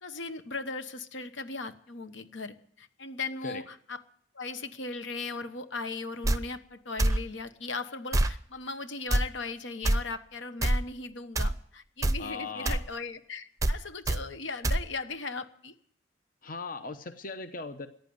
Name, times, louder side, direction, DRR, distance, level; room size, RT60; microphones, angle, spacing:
voice 1, 0.0-4.0 4.3-15.7, left 3 dB, 75° left, 10 dB, 1.2 m, -38 dB
sound 1, 6.2-6.4 7.0-7.2 8.1-8.3 9.1-9.2 9.8-10.0 10.6-10.8 11.3-11.6 12.0-12.2 12.6-12.8 13.6-13.8 14.1-14.2 14.6-14.8, right 1 dB, 15° right, 0.6 m, -25 dB
voice 2, 12.2-12.8 16.4-17.9, left 4 dB, 45° left, 9 dB, 0.9 m, -38 dB
15.0 x 10.5 x 9.4 m, 0.62 s
head